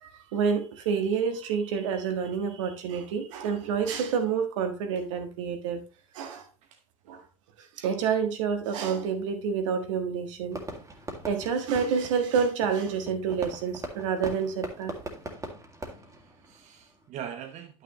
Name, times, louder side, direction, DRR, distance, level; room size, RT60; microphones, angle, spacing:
voice 1, 0.0-5.8 6.1-6.4 7.1-7.2 7.6-10.7 11.3-15.0, right 6 dB, 65° right, 1.5 m, -28 dB
Fireworks, 10.5-17.0, right 1 dB, 20° right, 2.2 m, -41 dB
voice 2, 15.9-17.8, right 9 dB, 45° right, 1.0 m, -42 dB
11.0 x 6.3 x 3.1 m
figure-of-eight pair, 70°, 17 cm